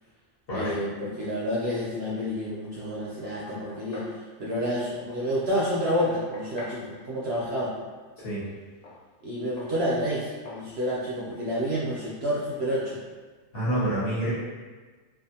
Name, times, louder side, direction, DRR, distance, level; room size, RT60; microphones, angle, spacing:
voice 1, 0.5-7.7 9.2-13.0, equal, 65° right, -6 dB, 0.7 m, -29 dB
Knock, 3.0-4.2 5.6-6.8 8.8-9.0 9.6-9.8 10.5-10.7, left 2 dB, 80° left, 1.1 m, -44 dB
voice 2, 13.5-14.3, right 1 dB, 50° left, -9 dB, 1.0 m, -27 dB
2.5 x 2.4 x 2.7 m, 1.4 s
omnidirectional pair, 1.4 m